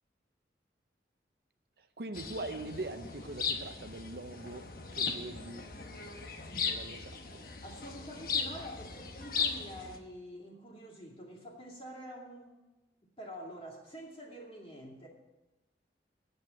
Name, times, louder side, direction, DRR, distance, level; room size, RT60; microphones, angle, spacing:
voice 1, 1.8-4.7 4.9-5.6 6.6-7.4, right 2 dB, 60° right, 9 dB, 0.6 m, -42 dB
sound 1, 2.1-10.0, left 5 dB, 55° left, 1.0 m, -37 dB
voice 2, 7.6-12.6 13.2-15.1, equal, 30° left, -2 dB, 2.4 m, -47 dB
9.2 x 7.9 x 8.1 m, 1.1 s
head